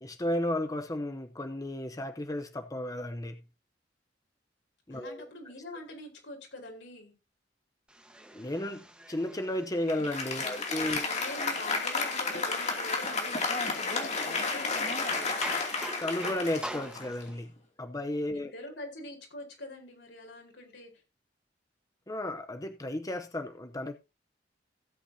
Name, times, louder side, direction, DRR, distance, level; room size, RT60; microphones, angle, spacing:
voice 1, 0.0-3.4 4.9-5.3 8.3-11.1 16.0-17.5 17.8-18.5 22.1-24.0, left 1 dB, 20° left, 0.8 m, -33 dB
voice 2, 4.9-7.1 10.4-15.5 18.3-20.9, left 2 dB, 90° left, 4.5 m, -45 dB
sound 1, 7.9-17.3, right 1 dB, 5° right, 1.3 m, -46 dB
Applause, 9.9-17.5, left 3 dB, 40° left, 2.7 m, -32 dB
16.5 x 8.3 x 2.8 m
head